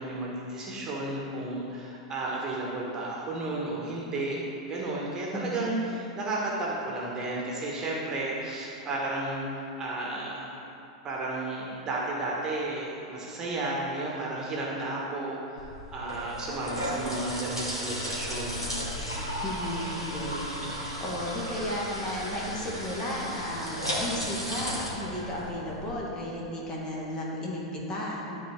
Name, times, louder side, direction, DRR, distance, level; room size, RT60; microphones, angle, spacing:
voice 1, 0.0-4.4 4.7-10.5 11.0-15.6 15.9-18.6, right 2 dB, 25° right, -4 dB, 1.5 m, -33 dB
voice 2, 5.3-5.7 19.4-20.5 21.0-28.4, left 1 dB, 25° left, -4 dB, 2.0 m, -34 dB
sound 1, 15.6-25.9, equal, 90° left, 1.6 m, -35 dB
12.5 x 4.2 x 4.6 m, 2.8 s
figure-of-eight pair, 90°, 3 cm